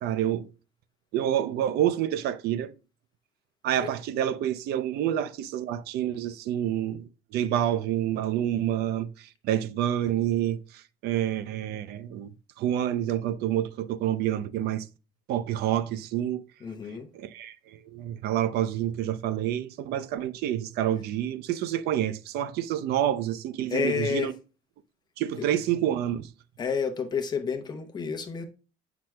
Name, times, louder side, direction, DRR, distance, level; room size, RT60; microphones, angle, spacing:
voice 1, 0.0-0.5 1.1-2.7 3.6-14.9 15.3-16.4 17.1-24.3 25.2-26.3, right 11 dB, 70° right, 0.5 m, -28 dB
voice 2, 16.6-17.1 23.7-24.3 25.4-25.5 26.6-28.4, left 6 dB, 25° left, 0.8 m, -30 dB
7.4 x 6.0 x 2.2 m
cardioid pair, 160°, 17 cm